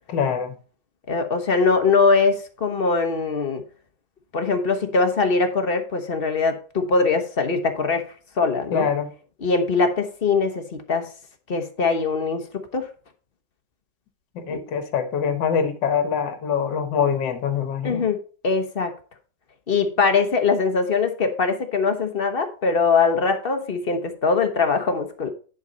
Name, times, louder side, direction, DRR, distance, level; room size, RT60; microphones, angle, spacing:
voice 1, 0.1-0.5 8.7-9.1 14.4-18.1, left 7 dB, 70° left, 1.7 m, -24 dB
voice 2, 1.1-3.6 4.3-8.1 8.4-8.9 9.4-11.1 11.5-12.8 14.5-14.6 17.8-18.2 18.4-18.9 19.7-25.3, left 4 dB, 35° left, 1.1 m, -22 dB
10.5 x 5.4 x 3.9 m
omnidirectional pair, 2.0 m